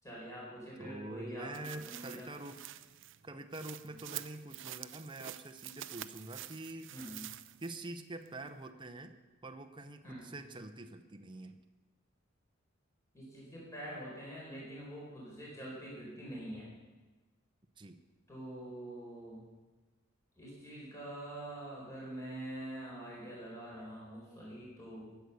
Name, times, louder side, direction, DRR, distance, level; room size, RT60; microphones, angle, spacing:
voice 1, 0.0-2.3 6.9-7.3 10.0-10.2 13.1-16.7 18.3-19.4 20.4-25.1, right 1 dB, 15° left, -5 dB, 4.5 m, -45 dB
voice 2, 0.8-2.7 3.2-6.9 7.6-11.6 17.8-18.0, right 2 dB, 25° right, 6 dB, 0.8 m, -46 dB
sound 1, 1.5-7.9 8.3-8.4, right 13 dB, 60° right, 0.5 m, -47 dB
21.0 x 8.0 x 6.9 m, 1.2 s
head